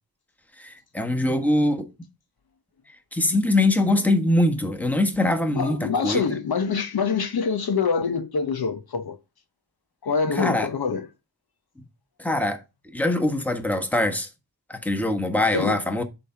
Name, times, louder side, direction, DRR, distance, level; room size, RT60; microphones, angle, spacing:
voice 1, 0.6-1.9 2.9-6.4 10.3-10.7 11.8-11.9 12.2-12.6 12.9-14.3 14.7-16.0, left 1 dB, 5° left, 1.3 m, -23 dB
voice 2, 5.5-9.2 10.0-11.1 15.5-15.8, left 5 dB, 65° left, 1.0 m, -25 dB
8.3 x 3.6 x 5.7 m
wide cardioid pair, 70°, 39 cm